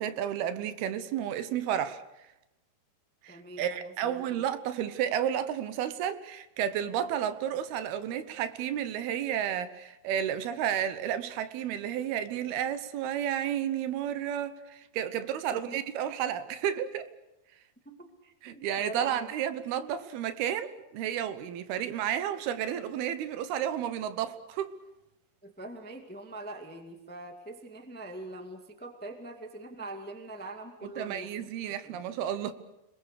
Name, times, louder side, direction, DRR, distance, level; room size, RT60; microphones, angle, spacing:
voice 1, 0.0-2.0 3.2-17.1 18.4-24.7 30.8-32.5, right 10 dB, 80° right, 3.0 m, -32 dB
voice 2, 3.3-4.4 15.5-15.8 17.8-19.3 25.4-31.5 31.8-32.0, right 2 dB, 5° left, 1.0 m, -43 dB
30.0 x 21.0 x 6.7 m
omnidirectional pair, 4.5 m